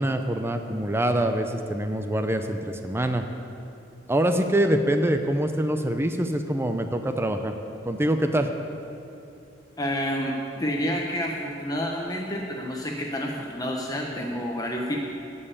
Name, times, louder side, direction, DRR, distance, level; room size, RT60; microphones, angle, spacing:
voice 1, 0.0-3.2 4.1-7.5 7.8-8.5, right 1 dB, 15° right, 7 dB, 0.5 m, -25 dB
voice 2, 9.8-15.0, equal, 20° left, 0 dB, 0.9 m, -29 dB
14.0 x 5.5 x 8.4 m, 2.7 s
head